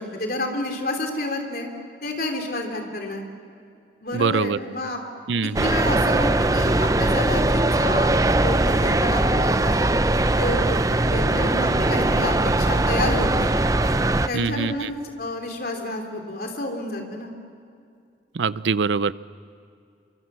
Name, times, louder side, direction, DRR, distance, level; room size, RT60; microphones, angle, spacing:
voice 1, 0.0-1.7 2.0-3.3 4.0-5.0 5.4-9.7 10.4-13.5 14.3-14.9 15.2-17.3, left 2 dB, 55° left, 3 dB, 3.4 m, -30 dB
voice 2, 4.1-4.6 5.3-5.7 14.3-14.9 18.3-19.1, right 5 dB, 85° right, 17 dB, 0.6 m, -23 dB
sound 1, 5.5-14.3, right 2 dB, 20° right, 0.6 m, -20 dB
27.0 x 24.0 x 7.5 m, 2.4 s
head